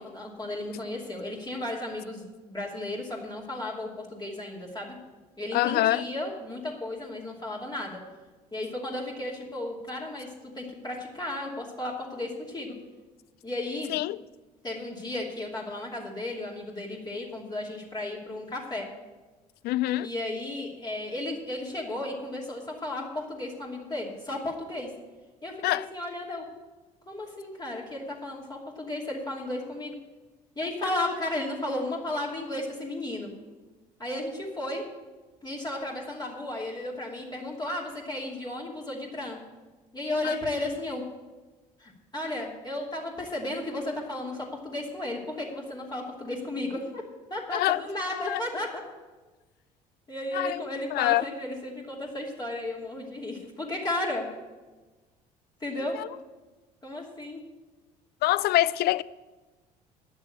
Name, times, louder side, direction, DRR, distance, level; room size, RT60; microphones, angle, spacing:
voice 1, 0.0-5.0 5.4-8.0 8.5-12.8 13.4-13.9 14.6-18.9 20.0-24.9 25.4-26.4 27.1-29.9 30.6-33.3 34.0-34.8 35.4-39.4 39.9-41.0 41.8-47.0 47.3-48.8 50.1-54.3 55.6-56.0 56.8-57.4, left 1 dB, 20° left, 2.7 m, -34 dB
voice 2, 5.5-6.0 13.9-14.2 19.6-20.1 25.6-25.8 40.2-40.3 47.5-47.8 48.2-48.4 50.3-50.6 50.9-51.2 58.2-59.0, left 16 dB, 55° left, 0.4 m, -24 dB
10.0 x 6.8 x 8.4 m
hypercardioid pair, 60°, 20 cm